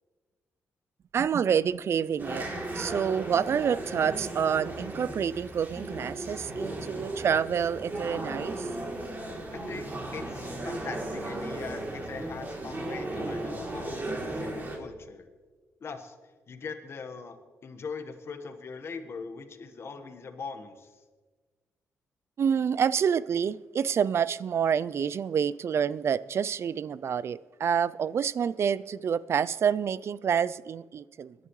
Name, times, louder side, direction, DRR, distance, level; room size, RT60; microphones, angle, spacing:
voice 1, 1.1-2.5 2.7-8.7 22.4-31.4, right 7 dB, 55° right, 0.4 m, -28 dB
sound 1, 2.2-14.8, right 1 dB, 40° right, 3.1 m, -36 dB
voice 2, 9.5-15.3 15.8-16.1 16.5-17.4 17.6-20.9, left 5 dB, 50° left, 1.4 m, -41 dB
22.0 x 11.0 x 3.2 m
cardioid pair, 75°, 5 cm